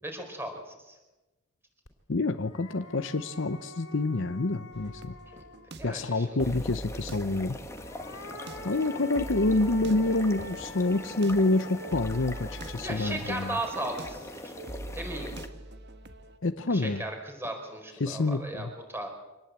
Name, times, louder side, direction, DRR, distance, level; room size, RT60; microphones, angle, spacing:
voice 1, 0.0-1.0 5.3-5.4 5.7-6.5 12.8-14.5 14.9-15.3 16.7-19.1, right 1 dB, 10° right, 3 dB, 4.5 m, -36 dB
sound 1, 1.9-2.0 2.3-6.0 7.6-14.9, left 3 dB, 75° left, 3.1 m, -46 dB
voice 2, 2.1-5.1 5.8-7.6 8.6-13.6 16.4-17.0 18.0-18.7, left 2 dB, 55° left, 9 dB, 0.8 m, -27 dB
sound 2, 4.7-16.4, right 1 dB, 50° right, 1.5 m, -43 dB
sound 3, 6.4-15.5, left 1 dB, 15° left, 1.6 m, -43 dB
25.5 x 19.5 x 8.3 m, 1.1 s
head